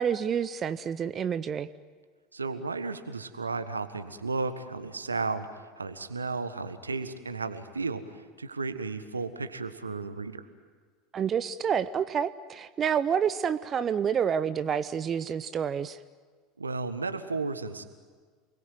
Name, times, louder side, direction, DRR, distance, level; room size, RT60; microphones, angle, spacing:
voice 1, 0.0-1.7 11.1-16.0, right 7 dB, 30° right, 14 dB, 0.7 m, -28 dB
voice 2, 2.3-10.5 16.6-17.8, right 3 dB, 80° right, 11 dB, 1.4 m, -34 dB
28.0 x 21.0 x 9.4 m, 1.5 s
figure-of-eight pair, 75°, 0 cm